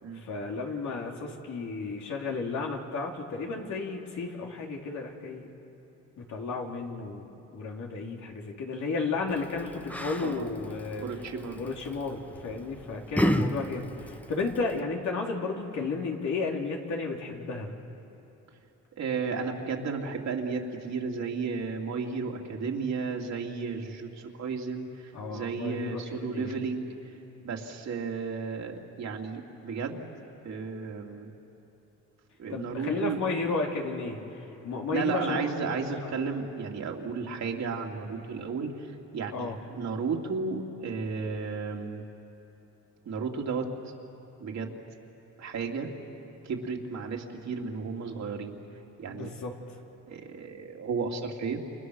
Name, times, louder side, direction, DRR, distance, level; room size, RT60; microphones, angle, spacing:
voice 1, 0.1-5.5 6.2-11.0 11.6-17.7 25.1-26.6 32.5-34.2 34.6-35.5 36.1-36.2 39.3-39.5 49.1-49.5, left 4 dB, 70° left, 0 dB, 3.5 m, -33 dB
Yell, 9.3-14.8, equal, 5° left, 1.3 m, -33 dB
voice 2, 11.0-11.6 19.0-27.1 27.4-30.1 30.4-31.3 32.4-33.2 34.9-42.0 43.0-43.7 44.4-44.7 45.4-45.9 46.4-48.6 49.0-49.3 50.1-51.6, right 5 dB, 65° right, 1 dB, 2.8 m, -33 dB
29.0 x 28.5 x 6.5 m, 2.9 s
cardioid pair, 90°, 30 cm